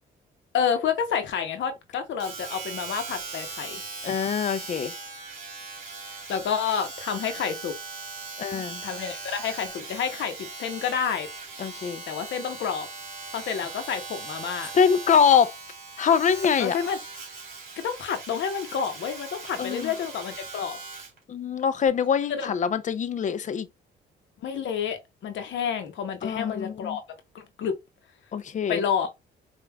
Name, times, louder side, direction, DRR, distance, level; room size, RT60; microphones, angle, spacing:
voice 1, 0.5-3.8 6.1-7.7 8.8-11.3 12.1-12.9 13.3-14.7 16.6-17.0 17.8-20.8 22.3-22.5 24.4-27.0 27.3-27.8 28.7-29.1, left 7 dB, 70° left, 0.8 m, -29 dB
Domestic sounds home sounds, 2.2-21.2 21.9-22.0, right 4 dB, 45° right, 2.1 m, -39 dB
voice 2, 4.0-4.9 8.4-8.8 11.6-12.0 14.7-15.6 16.0-16.8 19.6-19.9 21.3-23.7 26.2-27.0 28.3-28.8, left 7 dB, 40° left, 0.4 m, -24 dB
4.8 x 2.4 x 2.2 m
cardioid pair, 90°, 20 cm